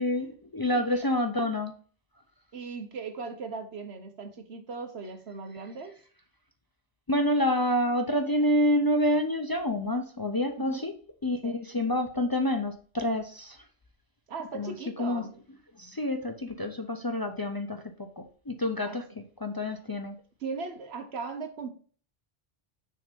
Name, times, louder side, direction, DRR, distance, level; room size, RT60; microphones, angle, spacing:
voice 1, 0.0-1.7 7.1-10.9 11.2-13.6 14.5-14.7 15.0-15.3 15.8-20.2, left 1 dB, 30° left, 0.4 m, -28 dB
voice 2, 2.5-5.9 10.6-10.8 11.4-11.6 14.3-15.3 18.8-19.0 20.4-21.7, right 4 dB, 90° right, 1.3 m, -38 dB
6.1 x 3.5 x 5.1 m
omnidirectional pair, 1.1 m